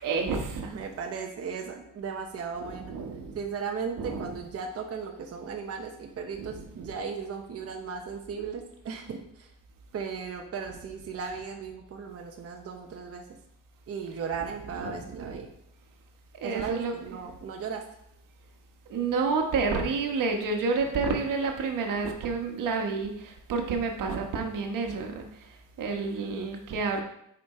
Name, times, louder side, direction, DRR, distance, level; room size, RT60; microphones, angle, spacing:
voice 1, 0.0-0.7 2.6-3.4 4.0-4.4 6.4-6.9 14.7-15.4 16.4-17.2 18.9-27.0, right 4 dB, 85° right, 3 dB, 1.3 m, -30 dB
voice 2, 0.7-2.9 3.3-9.5 9.9-13.2 13.9-15.5 16.4-17.8, right 6 dB, 45° right, 2 dB, 1.0 m, -36 dB
8.6 x 5.1 x 4.3 m, 0.75 s
cardioid pair, 150°, 32 cm